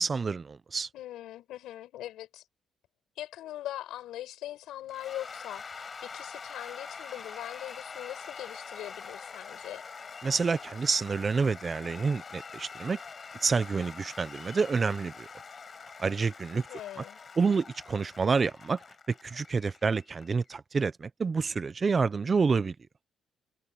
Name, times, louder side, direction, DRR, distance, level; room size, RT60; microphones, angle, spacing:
voice 1, 0.0-0.9 10.2-13.0 13.4-15.3 16.0-16.6 17.4-18.8 19.2-22.7, right 5 dB, 30° right, 0.8 m, -28 dB
voice 2, 0.9-2.4 3.2-9.8 16.5-17.2, left 13 dB, 85° left, 7.2 m, -41 dB
Cheering / Applause / Crowd, 4.9-20.5, left 5 dB, 35° left, 5.4 m, -45 dB
cardioid pair, 130°, 0 cm